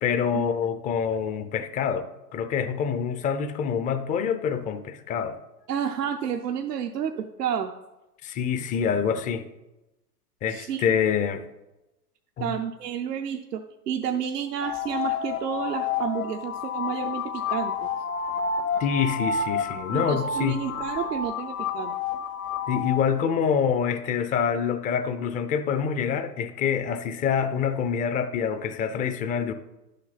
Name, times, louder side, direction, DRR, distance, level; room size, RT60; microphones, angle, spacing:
voice 1, 0.0-2.1 2.3-5.3 8.2-9.4 10.4-11.4 12.4-12.6 17.5-17.6 18.8-20.6 22.7-29.5, left 7 dB, 15° left, 10 dB, 0.5 m, -26 dB
voice 2, 5.7-7.7 10.5-10.8 12.4-17.9 19.9-21.9, right 8 dB, 80° right, 6 dB, 0.7 m, -30 dB
sound 1, 14.6-23.0, left 6 dB, 60° left, 1.1 m, -30 dB
11.0 x 6.6 x 4.0 m, 1.0 s
figure-of-eight pair, 95°, 47 cm